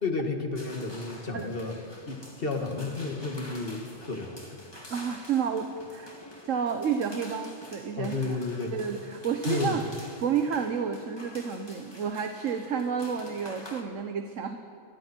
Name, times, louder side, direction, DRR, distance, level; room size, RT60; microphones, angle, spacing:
voice 1, 0.0-1.7 2.1-4.6 8.0-8.7 9.5-9.9, left 3 dB, 50° left, 3 dB, 2.3 m, -32 dB
sound 1, 0.6-13.8, left 1 dB, 20° left, 2.2 m, -47 dB
voice 2, 4.9-6.2 6.5-8.2 8.7-9.8 10.2-14.6, right 6 dB, 85° right, 6 dB, 1.4 m, -30 dB
29.0 x 23.5 x 4.6 m, 2.5 s
omnidirectional pair, 1.3 m